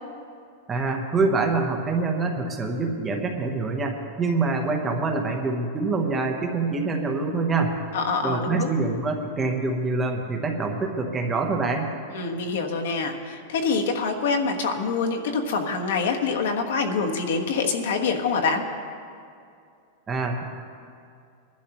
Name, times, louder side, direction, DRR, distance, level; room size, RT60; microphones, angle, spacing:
voice 1, 0.7-7.7 8.2-11.9 20.1-20.4, right 3 dB, 10° right, 2 dB, 0.9 m, -25 dB
voice 2, 7.9-8.7 12.1-18.6, left 4 dB, 75° left, 3 dB, 1.3 m, -25 dB
21.0 x 11.5 x 3.0 m, 2.4 s
supercardioid pair, 175°, 0 cm